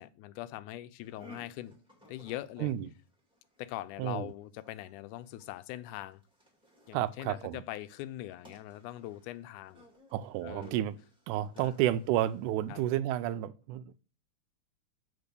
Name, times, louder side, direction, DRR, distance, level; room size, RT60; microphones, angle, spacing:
voice 1, 0.0-1.8 2.1-2.7 3.6-6.2 6.9-9.8 10.4-10.8 11.6-11.7 12.7-12.9, left 15 dB, 90° left, 2.1 m, -42 dB
sound 1, 1.0-13.0, left 1 dB, 5° right, 1.2 m, -59 dB
voice 2, 2.6-2.9 4.0-4.3 6.9-7.6 10.1-11.0 11.3-14.0, right 12 dB, 90° right, 2.0 m, -31 dB
7.0 x 4.2 x 6.7 m
omnidirectional pair, 3.5 m